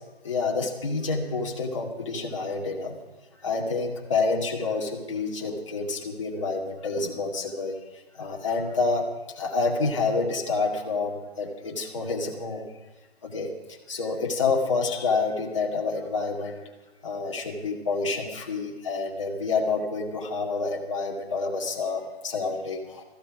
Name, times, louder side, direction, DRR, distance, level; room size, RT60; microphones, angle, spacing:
voice 1, 0.2-3.0 3.4-12.6 13.2-16.6 17.0-23.0, left 4 dB, 30° left, -1 dB, 2.3 m, -28 dB
19.5 x 15.0 x 4.9 m, 1.1 s
hypercardioid pair, 170°, 32 cm